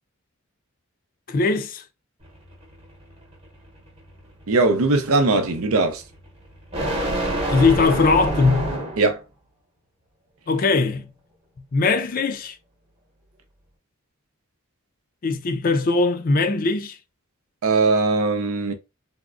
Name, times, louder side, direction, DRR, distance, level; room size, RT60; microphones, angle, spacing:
voice 1, 1.3-1.8 7.5-8.8 10.5-11.1 11.7-12.6 15.2-17.0, left 3 dB, 40° left, 0.4 m, -20 dB
sound 1, 2.2-9.2, right 1 dB, 25° right, 0.9 m, -29 dB
voice 2, 4.5-6.0 9.0-9.2 17.6-18.7, right 3 dB, 75° right, 0.6 m, -20 dB
3.5 x 2.1 x 2.4 m
head